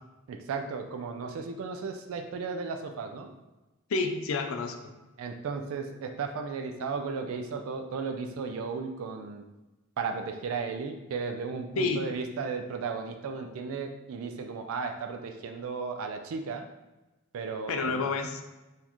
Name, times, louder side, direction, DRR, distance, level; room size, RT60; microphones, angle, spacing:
voice 1, 0.3-3.3 5.2-9.4 10.0-16.7 17.3-18.0, right 5 dB, 75° right, 5 dB, 0.3 m, -35 dB
voice 2, 3.9-4.9 11.8-12.1 17.7-18.4, left 4 dB, 75° left, 5 dB, 0.4 m, -29 dB
3.9 x 2.6 x 2.9 m, 1.1 s
head